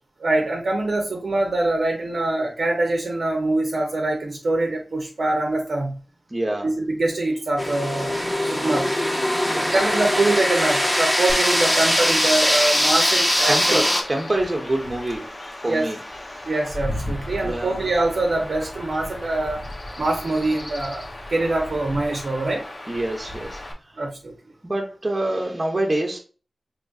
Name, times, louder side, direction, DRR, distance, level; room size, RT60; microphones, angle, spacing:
voice 1, 0.2-6.0 6.6-8.1 8.5-8.9 9.6-13.8 15.7-15.9 16.4-19.7 20.0-22.7 24.0-24.3, right 2 dB, 70° right, 0.7 m, -24 dB
voice 2, 6.3-6.7 9.5-9.8 13.5-15.3 15.6-16.0 17.4-17.8 22.9-23.6 24.6-26.2, right 1 dB, 30° right, 0.7 m, -26 dB
sound 1, 7.6-14.0, equal, 20° left, 0.8 m, -21 dB
Chirp tweet / Wind / Stream, 11.3-23.7, left 1 dB, 50° left, 0.8 m, -35 dB
3.8 x 3.1 x 2.4 m
wide cardioid pair, 80°, 0 cm